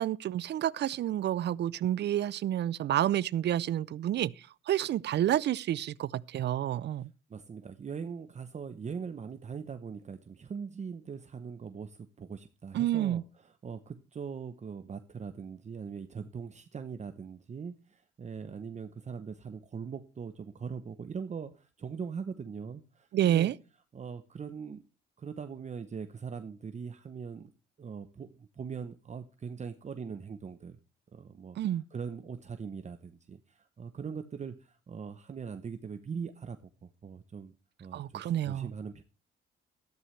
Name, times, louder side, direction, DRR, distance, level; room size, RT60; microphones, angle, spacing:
voice 1, 0.0-4.3 4.7-7.1 12.7-13.2 23.1-23.5 31.6-31.8 37.9-38.7, right 12 dB, 60° right, 0.5 m, -29 dB
voice 2, 7.3-23.5 23.9-24.8 25.2-27.5 27.8-30.8 31.1-31.6 31.9-37.5 37.8-39.0, right 6 dB, 35° right, 0.8 m, -41 dB
13.5 x 12.5 x 3.2 m
cardioid pair, 90°, 20 cm